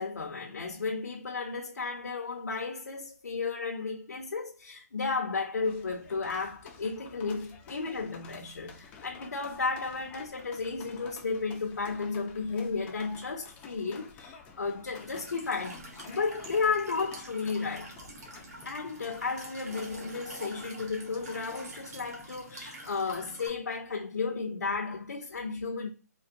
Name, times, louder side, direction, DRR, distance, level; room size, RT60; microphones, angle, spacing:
voice 1, 0.0-18.0 18.6-25.9, left 4 dB, 85° left, 0.6 m, -33 dB
sound 1, 5.6-22.3, left 5 dB, 15° left, 0.4 m, -52 dB
Walk footsteps / Chirp tweet / Stream, 15.0-23.5, right 1 dB, 65° right, 1.5 m, -46 dB
3.7 x 2.2 x 2.5 m
hypercardioid pair, 150°, 9 cm